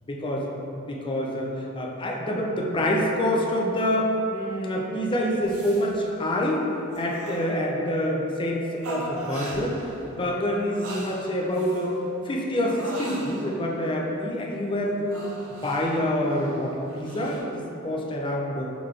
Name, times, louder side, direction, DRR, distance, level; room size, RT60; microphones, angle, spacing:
voice 1, 0.1-6.7 7.0-9.8 10.0-15.2 15.6-18.7, equal, 25° left, -1 dB, 0.4 m, -26 dB
sound 1, 5.4-5.9 6.2-6.6 6.9-7.9 8.8-10.1 10.5-11.9 12.7-13.7 15.1-17.4, right 1 dB, 75° right, 0.6 m, -39 dB
3.8 x 3.5 x 3.2 m, 3.0 s
head